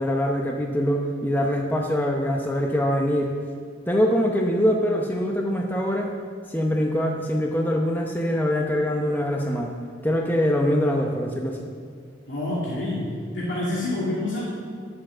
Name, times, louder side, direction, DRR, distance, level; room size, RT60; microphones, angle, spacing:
voice 1, 0.0-3.3 3.9-6.1 6.5-9.8 10.0-11.7, equal, 10° left, 0 dB, 0.8 m, -23 dB
voice 2, 12.3-14.4, left 1 dB, 75° left, -7 dB, 2.4 m, -27 dB
11.0 x 7.5 x 7.4 m, 2.1 s
head